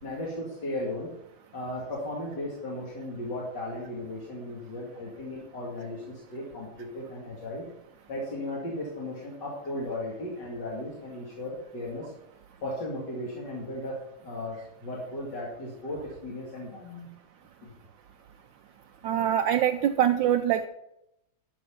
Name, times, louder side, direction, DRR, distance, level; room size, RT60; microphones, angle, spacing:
voice 1, 0.0-1.1 1.5-7.7 8.1-12.1 12.6-14.0 14.2-17.1 17.6-17.7, left 1 dB, 55° left, -4 dB, 2.8 m, -36 dB
voice 2, 19.0-20.7, right 10 dB, 75° right, 7 dB, 1.2 m, -24 dB
12.5 x 6.3 x 5.6 m, 0.85 s
omnidirectional pair, 2.2 m